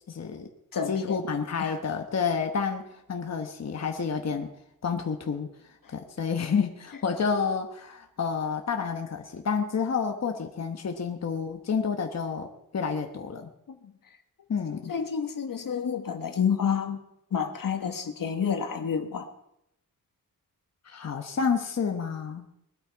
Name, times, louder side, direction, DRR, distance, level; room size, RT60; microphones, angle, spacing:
voice 1, 0.1-0.5 0.9-4.5 4.8-5.5 5.9-13.5 14.5-14.9 20.8-22.5, left 6 dB, 50° left, 4 dB, 1.1 m, -29 dB
voice 2, 0.7-1.2 1.6-1.8 5.8-5.9 13.7-13.9 14.9-17.0 17.3-19.3, left 7 dB, 75° left, 6 dB, 1.5 m, -29 dB
20.5 x 12.5 x 4.6 m, 0.80 s
wide cardioid pair, 180°, 33 cm